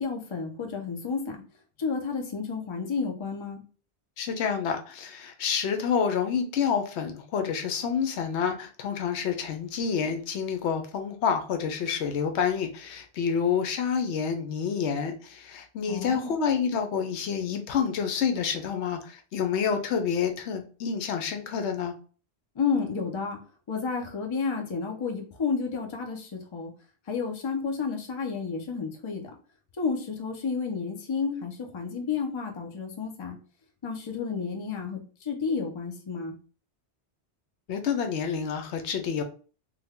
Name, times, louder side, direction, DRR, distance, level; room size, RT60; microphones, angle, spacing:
voice 1, 0.0-1.4 1.8-3.6 15.9-16.3 22.6-23.4 23.7-26.7 27.1-29.3 29.8-33.4 33.8-36.3, left 5 dB, 35° left, 3 dB, 0.6 m, -31 dB
voice 2, 4.2-21.9 37.7-39.2, left 6 dB, 85° left, 6 dB, 0.9 m, -28 dB
3.4 x 2.2 x 3.5 m, 0.39 s
omnidirectional pair, 1.1 m